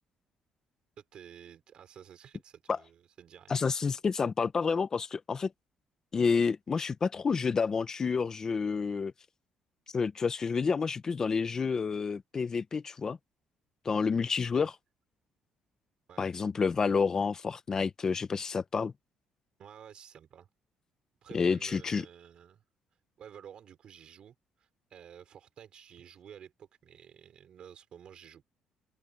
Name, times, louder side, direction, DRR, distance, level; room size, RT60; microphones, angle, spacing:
voice 1, 1.0-3.6 14.5-14.7 16.1-16.3 19.6-20.5 21.2-22.6 23.2-28.4, right 9 dB, 50° right, 5.1 m, -52 dB
voice 2, 3.5-5.5 6.1-9.1 9.9-13.2 13.8-14.7 16.2-18.9 21.3-22.0, left 5 dB, 30° left, 1.0 m, -29 dB
cardioid pair, 135°, 2 cm